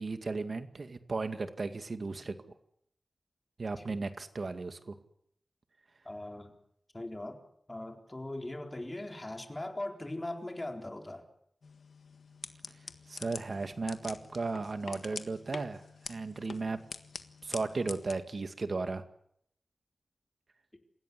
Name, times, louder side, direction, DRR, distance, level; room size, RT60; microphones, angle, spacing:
voice 1, 0.0-2.3 3.6-5.0 13.1-16.8 17.4-19.0, right 3 dB, 60° right, 9 dB, 2.2 m, -35 dB
voice 2, 6.0-6.5 6.9-7.4 7.7-11.2 20.7-20.8, left 1 dB, 25° left, 4 dB, 4.2 m, -40 dB
sound 1, 11.6-18.1, left 4 dB, 85° left, 1.6 m, -46 dB
28.0 x 16.5 x 9.9 m, 0.72 s
wide cardioid pair, 80°, 0 cm